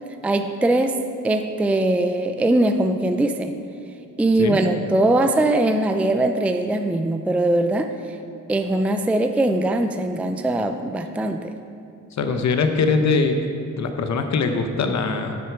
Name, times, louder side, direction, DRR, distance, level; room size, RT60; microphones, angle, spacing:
voice 1, 0.2-1.0 1.2-3.5 4.2-7.9 8.5-11.5, right 1 dB, 5° right, 6 dB, 0.4 m, -21 dB
voice 2, 12.2-13.4 13.8-15.4, left 4 dB, 65° left, 6 dB, 0.8 m, -22 dB
9.7 x 8.1 x 4.5 m, 2.4 s
wide cardioid pair, 120°, 31 cm